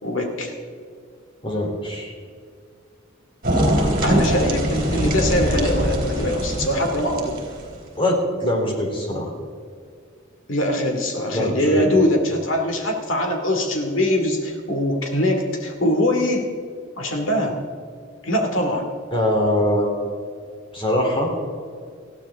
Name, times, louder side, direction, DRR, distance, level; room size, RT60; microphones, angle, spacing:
voice 1, 0.0-0.5 4.0-7.4 10.5-16.5 17.0-17.7 18.2-18.9, left 1 dB, 75° left, 3 dB, 2.5 m, -22 dB
voice 2, 1.4-2.1 8.0-9.3 11.3-11.9 19.1-19.9 20.7-21.3, left 1 dB, 25° left, 0 dB, 3.4 m, -22 dB
sound 1, 3.4-7.8, equal, 45° right, 3.6 m, -22 dB
20.0 x 15.0 x 3.7 m, 2.2 s
head